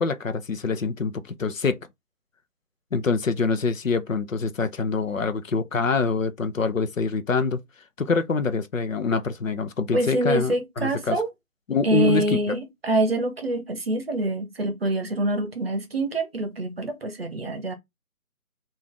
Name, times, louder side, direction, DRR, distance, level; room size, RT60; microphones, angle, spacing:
voice 1, 0.0-1.8 2.9-7.6 8.0-11.2 11.7-12.6, left 4 dB, 60° left, 0.7 m, -25 dB
voice 2, 9.9-11.3 11.8-17.7, right 1 dB, 40° right, 0.8 m, -25 dB
3.5 x 2.5 x 3.6 m
figure-of-eight pair, 160°, 44 cm